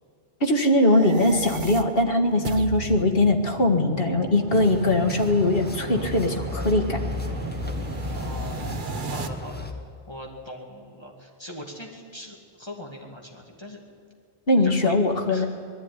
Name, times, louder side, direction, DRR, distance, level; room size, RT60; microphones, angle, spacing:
voice 1, 0.4-7.0 14.5-15.5, left 1 dB, 65° left, 4 dB, 2.0 m, -21 dB
sound 1, 0.8-9.3, right 5 dB, 55° right, 1.1 m, -35 dB
sound 2, 4.5-9.7, left 3 dB, 10° left, 1.5 m, -34 dB
voice 2, 8.1-9.7 10.1-13.8 14.6-15.0 15.3-15.5, left 1 dB, 25° left, -1 dB, 2.5 m, -40 dB
20.0 x 13.5 x 9.9 m, 2.3 s
omnidirectional pair, 1.0 m